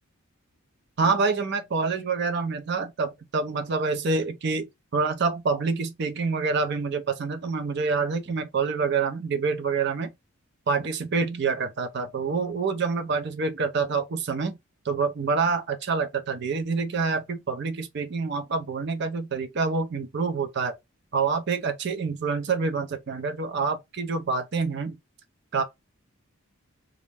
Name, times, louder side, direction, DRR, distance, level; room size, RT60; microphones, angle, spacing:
voice 1, 1.0-4.7 4.9-10.1 10.7-14.5 14.8-20.7 21.1-25.0 25.5-25.6, right 4 dB, 50° right, 0.4 m, -27 dB
2.4 x 2.1 x 3.2 m
head